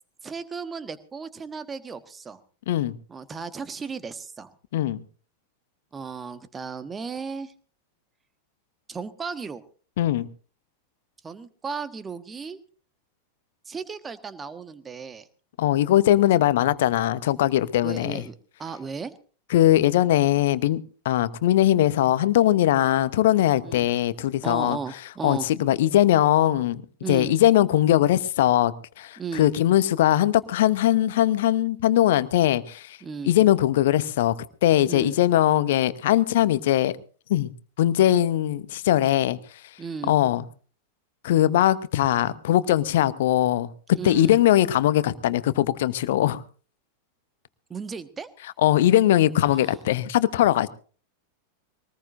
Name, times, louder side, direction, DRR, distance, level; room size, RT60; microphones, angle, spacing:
voice 1, 0.2-2.4 3.1-4.5 5.9-7.5 8.9-9.6 11.2-12.6 13.7-15.3 17.8-19.1 23.6-23.9 24.4-25.5 27.0-27.3 29.2-29.5 33.0-33.3 34.9-35.2 39.8-40.1 43.9-44.4 47.7-48.3 49.5-49.8, right 5 dB, 15° right, 1.4 m, -35 dB
voice 2, 4.7-5.0 10.0-10.3 15.6-18.2 19.5-24.8 25.2-26.8 27.1-33.0 33.3-34.3 34.6-36.9 37.3-37.5 37.8-39.4 40.1-40.4 41.2-46.4 48.6-50.7, left 13 dB, 55° left, 0.9 m, -21 dB
23.0 x 19.0 x 2.6 m
figure-of-eight pair, 90°, 0 cm